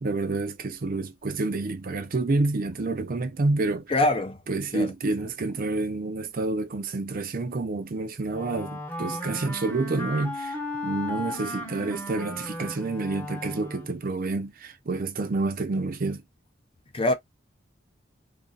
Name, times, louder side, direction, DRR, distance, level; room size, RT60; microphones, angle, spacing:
voice 1, 0.0-3.8 4.5-10.6 10.8-16.2, right 3 dB, 45° right, 0.5 m, -28 dB
voice 2, 3.9-4.4 4.7-4.9 16.9-17.1, left 1 dB, 25° left, 0.6 m, -23 dB
Wind instrument woodwind instrument, 8.3-14.1, left 1 dB, 10° left, 0.9 m, -35 dB
2.8 x 2.6 x 3.8 m
head